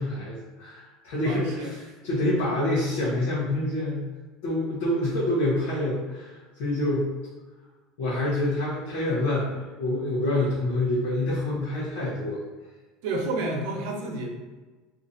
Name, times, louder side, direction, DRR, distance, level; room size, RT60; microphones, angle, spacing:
voice 1, 0.0-4.1 4.4-7.1 8.0-12.4, left 1 dB, 75° left, -8 dB, 1.1 m, -27 dB
voice 2, 1.2-1.7 2.5-2.6 13.0-14.3, right 2 dB, 75° right, 1 dB, 0.8 m, -30 dB
2.9 x 2.5 x 3.9 m, 1.3 s
supercardioid pair, 105°, 0 cm